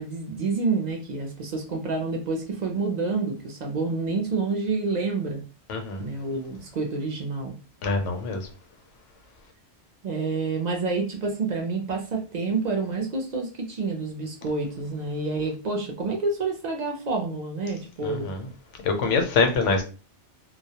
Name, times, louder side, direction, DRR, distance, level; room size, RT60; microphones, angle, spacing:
voice 1, 0.0-5.4 6.0-7.5 10.0-18.3, right 3 dB, 60° right, 0.4 m, -28 dB
voice 2, 5.7-6.0 7.8-8.4 18.0-18.4 18.8-19.8, left 4 dB, 85° left, 1.0 m, -24 dB
2.3 x 2.0 x 2.7 m
omnidirectional pair, 1.2 m